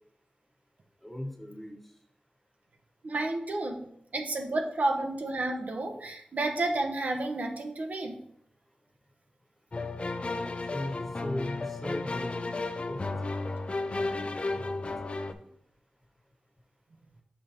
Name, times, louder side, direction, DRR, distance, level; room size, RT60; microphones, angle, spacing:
voice 1, 1.0-1.8 10.7-13.4 13.8-15.5, left 1 dB, 5° left, 1 dB, 1.3 m, -40 dB
voice 2, 3.0-8.2, right 2 dB, 70° right, 3 dB, 0.9 m, -31 dB
sound 1, 9.7-15.3, left 3 dB, 45° left, 0.5 m, -33 dB
5.5 x 5.0 x 4.2 m, 0.70 s
wide cardioid pair, 60°, 3 cm